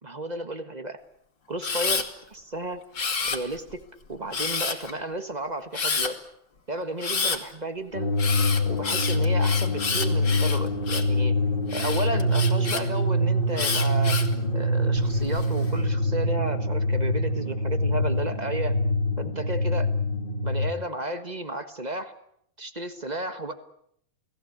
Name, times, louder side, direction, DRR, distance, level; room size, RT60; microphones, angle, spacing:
voice 1, 0.0-1.0 1.5-2.8 3.3-3.8 4.1-6.2 6.7-8.1 8.7-11.4 11.7-14.2 14.5-18.8 19.2-19.9 20.4-22.1 22.6-23.5, right 2 dB, 35° right, 9 dB, 0.6 m, -33 dB
Camera, 1.6-2.1 2.9-3.7 4.3-4.9 5.7-6.1 7.0-7.4 8.2-11.1 11.7-12.8 13.6-14.3 15.0-15.5, left 5 dB, 40° left, 2.8 m, -29 dB
sound 1, 7.9-20.7, left 1 dB, 20° left, 1.7 m, -25 dB
29.5 x 19.0 x 8.7 m, 0.71 s
omnidirectional pair, 3.3 m